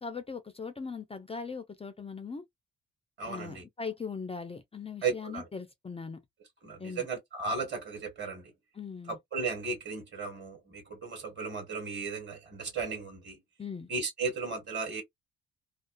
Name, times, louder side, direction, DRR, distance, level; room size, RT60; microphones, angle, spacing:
voice 1, 0.0-2.4 3.3-6.2 6.8-7.1 8.7-9.2 13.6-13.9, left 5 dB, 15° left, 0.5 m, -40 dB
voice 2, 3.2-3.6 5.0-5.5 6.6-8.5 9.1-13.4 13.9-15.0, right 4 dB, 30° right, 1.4 m, -35 dB
2.4 x 2.3 x 2.3 m
figure-of-eight pair, 45°, 36 cm